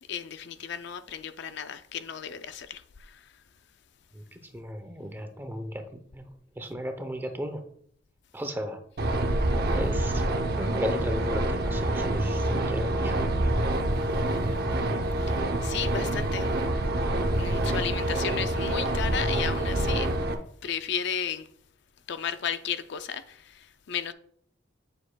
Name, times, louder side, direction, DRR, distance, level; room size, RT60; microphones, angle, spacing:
voice 1, 0.0-3.4 15.3-16.5 17.4-20.2 20.6-21.5 22.1-24.1, left 7 dB, 60° left, 0.4 m, -34 dB
voice 2, 4.1-6.2 6.6-7.6 8.3-8.8 9.7-10.2 10.6-13.2 16.1-16.3, equal, 10° right, 0.6 m, -35 dB
sound 1, 9.0-20.3, right 1 dB, 50° right, 0.7 m, -27 dB
8.6 x 7.1 x 2.2 m
head